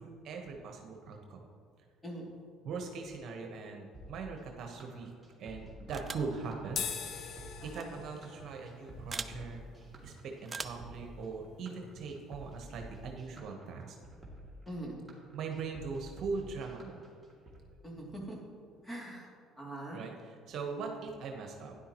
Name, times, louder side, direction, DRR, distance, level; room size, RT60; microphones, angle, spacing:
voice 1, 0.0-1.5 2.6-5.1 5.4-6.8 7.6-9.6 10.0-14.0 15.3-17.0 19.9-21.8, right 4 dB, 60° right, 2 dB, 1.2 m, -41 dB
sound 1, 3.9-17.6, right 1 dB, 5° right, 2.7 m, -51 dB
sound 2, 5.9-6.4 7.7-7.8 9.1-9.4 10.5-10.9, right 4 dB, 30° right, 0.5 m, -41 dB
sound 3, 6.7-13.3, left 7 dB, 60° left, 0.9 m, -45 dB
voice 2, 7.6-7.9 14.7-15.0 17.8-18.4 18.8-19.3 19.6-20.0, right 1 dB, 10° left, -3 dB, 2.8 m, -42 dB
12.5 x 10.0 x 3.0 m, 2.2 s
supercardioid pair, 75°, 0 cm